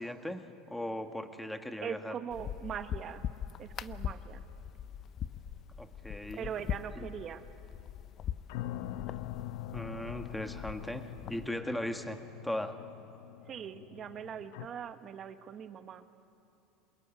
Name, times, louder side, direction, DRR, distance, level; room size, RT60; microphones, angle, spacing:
voice 1, 0.0-2.1 5.8-6.5 7.0-7.1 9.7-12.8, left 1 dB, 5° left, 7 dB, 1.5 m, -38 dB
voice 2, 1.8-3.3 3.6-4.4 6.4-7.5 13.5-16.1, right 8 dB, 40° right, 9 dB, 1.3 m, -41 dB
sound 1, 2.3-11.5, left 9 dB, 40° left, 0.7 m, -42 dB
sound 2, 8.5-14.7, left 14 dB, 75° left, 0.8 m, -43 dB
26.5 x 21.5 x 9.2 m, 2.8 s
supercardioid pair, 120°, 0 cm